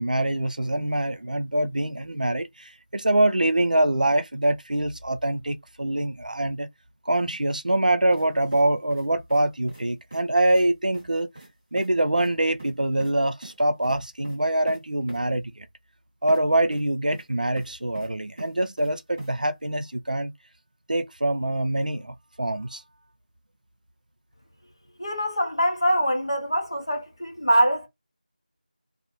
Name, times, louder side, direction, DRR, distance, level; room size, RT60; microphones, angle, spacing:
voice 1, 0.0-6.7 7.1-11.3 11.7-15.7 16.2-20.3 20.9-22.8, right 1 dB, 65° right, 0.4 m, -24 dB
sound 1, 8.1-8.3 8.5-9.4 9.7-9.8 10.1-10.2 10.5-10.7 10.9-11.1 11.3-11.5 11.8-11.9 12.2-12.3 12.6-13.1 13.4-13.6 13.8-14.0 14.2-14.4 14.7-14.8 15.1-15.2 16.3-16.4 16.7-17.3 17.6-18.1 18.4-18.9 19.2-19.3, right 2 dB, 15° right, 0.7 m, -43 dB
voice 2, 25.0-27.9, equal, 35° left, 0.5 m, -23 dB
2.4 x 2.0 x 2.8 m
figure-of-eight pair, 180°, 5 cm